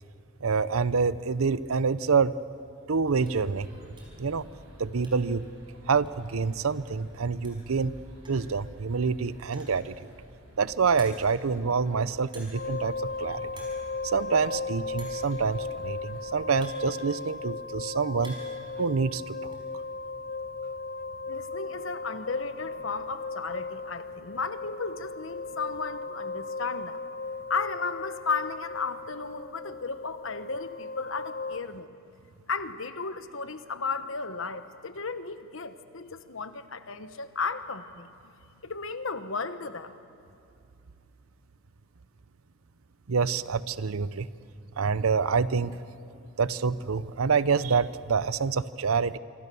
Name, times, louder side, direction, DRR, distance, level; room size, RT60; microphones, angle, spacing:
voice 1, 0.4-2.3 2.9-3.7 4.2-4.5 4.8-5.5 5.9-8.0 8.3-10.1 10.6-13.5 14.0-18.4 18.8-19.6 43.1-44.3 44.8-45.8 46.4-49.2, right 5 dB, 90° right, 17 dB, 0.7 m, -27 dB
sound 1, 3.1-16.2, equal, 75° right, 7.2 m, -51 dB
sound 2, 3.3-3.5 4.0-4.3 4.6-5.4 5.7-5.8 6.1-6.2 7.2-7.3 7.4-7.8 8.2-8.5 9.4-9.9 10.4-10.5 11.0-11.4 12.3-12.7 13.0-13.2 13.5-13.8 14.1-14.2 15.0-15.3 16.1-17.4 17.8-18.6 18.9-19.6, right 2 dB, 25° right, 5.5 m, -50 dB
sound 3, 12.5-31.6, left 3 dB, 45° left, 0.5 m, -37 dB
voice 2, 21.3-27.0 27.5-31.9 32.5-38.1 38.6-40.0, left 4 dB, 65° left, 11 dB, 1.2 m, -34 dB
26.5 x 24.5 x 7.0 m, 2.6 s
head